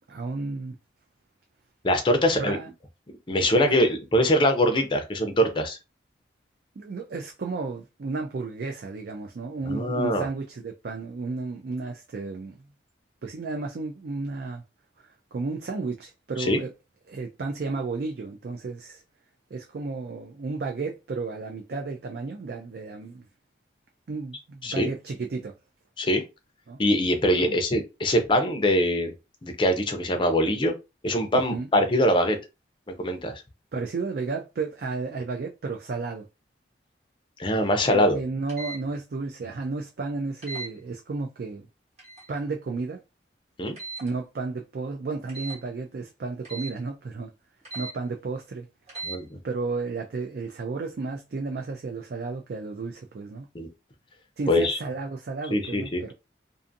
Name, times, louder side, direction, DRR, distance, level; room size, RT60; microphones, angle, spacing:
voice 1, 0.1-0.8 2.4-2.7 3.7-3.8 6.8-12.6 13.2-14.6 15.0-16.7 17.1-19.0 19.5-23.2 24.1-25.5 26.7-26.8 27.4-27.6 31.3-31.7 33.7-36.3 37.9-41.7 42.3-43.0 44.0-47.3 47.7-48.7 49.4-53.5 54.4-56.1, right 3 dB, 55° right, 0.4 m, -33 dB
voice 2, 1.8-2.6 3.3-5.8 9.7-10.3 16.4-16.6 24.6-24.9 26.0-26.2 26.8-29.1 29.4-30.7 31.0-32.4 33.0-33.3 37.4-38.2 43.6-43.8 49.0-49.4 53.5-53.7 54.5-54.8 55.5-56.0, equal, 25° left, 0.5 m, -23 dB
sound 1, 38.5-38.8 40.4-40.7 42.0-42.3 43.8-44.1 45.3-45.6 46.4-46.7 47.6-47.9 48.9-49.2, right 3 dB, 35° right, 1.0 m, -37 dB
2.5 x 2.5 x 2.5 m
head